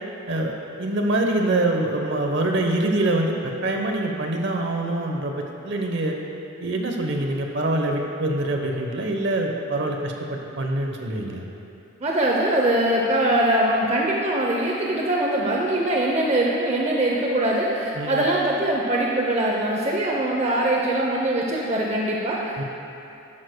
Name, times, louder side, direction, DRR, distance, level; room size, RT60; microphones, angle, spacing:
voice 1, 0.8-6.2 6.6-11.5 18.0-18.2 22.6-22.7, right 2 dB, 55° right, 2 dB, 0.9 m, -25 dB
voice 2, 12.0-22.6, right 1 dB, 30° right, -2 dB, 0.6 m, -22 dB
11.5 x 11.0 x 2.2 m, 2.8 s
head